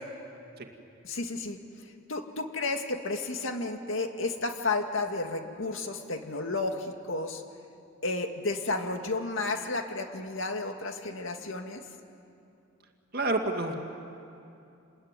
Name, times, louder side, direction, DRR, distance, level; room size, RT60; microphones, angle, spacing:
voice 1, 1.0-1.6 2.1-7.4 8.0-11.8, left 3 dB, 70° left, 5 dB, 2.1 m, -32 dB
voice 2, 13.1-13.8, right 2 dB, 45° right, 3 dB, 2.1 m, -28 dB
29.0 x 21.0 x 9.8 m, 2.6 s
head